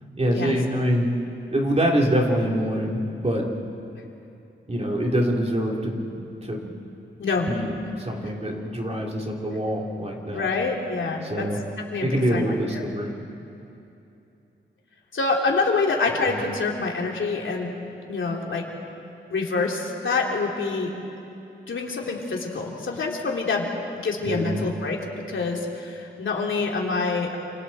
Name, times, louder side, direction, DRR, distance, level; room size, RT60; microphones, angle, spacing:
voice 1, 0.2-1.1 1.5-3.5 4.7-6.7 7.5-10.5 11.2-11.6 12.0-13.1 16.3-16.4 24.2-24.6, equal, 30° right, -1 dB, 3.5 m, -25 dB
voice 2, 10.3-11.4 11.9-12.4 12.7-12.8 15.1-17.7 18.1-18.6 19.3-20.9 21.7-23.7 23.9-25.0 25.3-27.4, left 4 dB, 75° left, 0 dB, 3.1 m, -26 dB
29.5 x 27.5 x 4.4 m, 2.8 s
wide cardioid pair, 85°, 20 cm